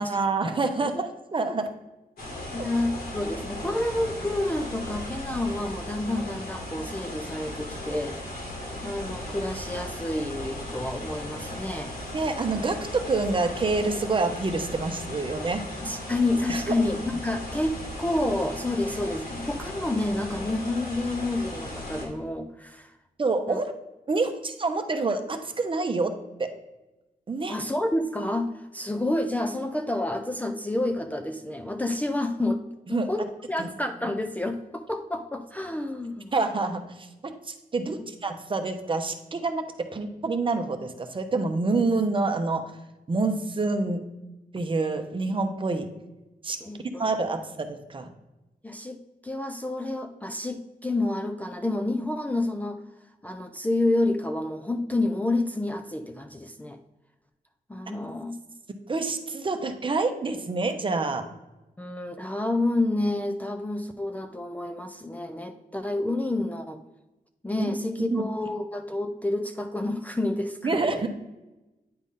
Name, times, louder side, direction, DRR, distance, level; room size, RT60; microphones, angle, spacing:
voice 1, 0.0-1.7 2.6-2.7 12.1-15.6 16.5-16.7 23.2-23.7 24.1-26.1 26.4-26.5 27.3-27.5 32.9-33.1 33.6-33.7 36.3-37.1 37.5-42.7 43.1-44.1 44.5-45.9 46.4-46.6 47.0-48.1 58.9-61.2 67.6-67.7 68.1-68.2 70.6-71.1, right 3 dB, 35° right, 6 dB, 0.8 m, -27 dB
sound 1, 2.2-22.0, left 1 dB, 75° left, 2.5 m, -37 dB
voice 2, 2.5-8.4 8.8-11.9 15.8-22.9 23.5-23.6 27.5-32.6 32.9-36.3 37.8-38.1 46.6-47.1 48.6-52.8 53.2-56.8 57.7-58.3 61.8-66.8 67.4-71.0, left 2 dB, 10° left, 6 dB, 0.4 m, -29 dB
9.6 x 4.0 x 3.6 m, 1.0 s
wide cardioid pair, 110°, 15 cm